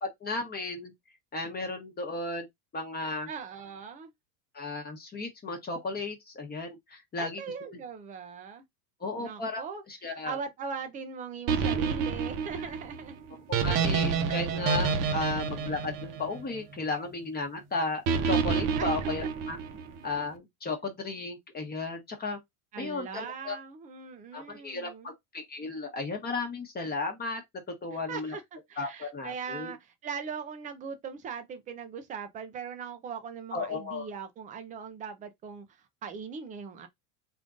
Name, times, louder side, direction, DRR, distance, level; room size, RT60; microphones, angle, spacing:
voice 1, 0.0-0.9 1.3-2.5 2.7-3.3 4.5-7.4 9.0-9.6 9.9-10.4 13.5-19.6 20.0-22.4 22.8-23.6 24.3-27.4 27.8-28.4 28.8-29.7 33.5-34.1, left 3 dB, 20° left, 0.9 m, -34 dB
voice 2, 3.3-4.1 7.2-8.6 9.2-9.8 10.2-13.4 15.0-15.3 18.7-19.1 22.7-25.1 27.9-36.9, right 6 dB, 20° right, 0.3 m, -40 dB
sound 1, 11.5-16.8 18.1-20.0, right 6 dB, 40° right, 0.7 m, -29 dB
3.6 x 2.5 x 3.7 m
supercardioid pair, 140°, 49 cm